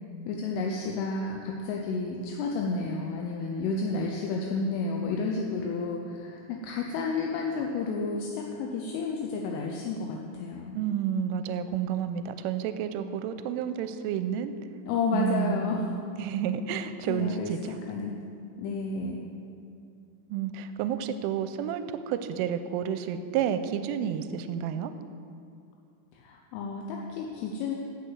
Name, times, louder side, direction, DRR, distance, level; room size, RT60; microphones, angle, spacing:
voice 1, 0.3-10.8 14.9-15.9 17.1-18.2 18.6-19.2 26.1-27.8, left 4 dB, 80° left, 0 dB, 3.3 m, -31 dB
voice 2, 10.8-14.6 15.1-15.9 16.2-17.6 20.3-24.9, right 8 dB, 85° right, 10 dB, 3.0 m, -30 dB
12.0 x 7.6 x 7.8 m, 2.4 s
omnidirectional pair, 6.0 m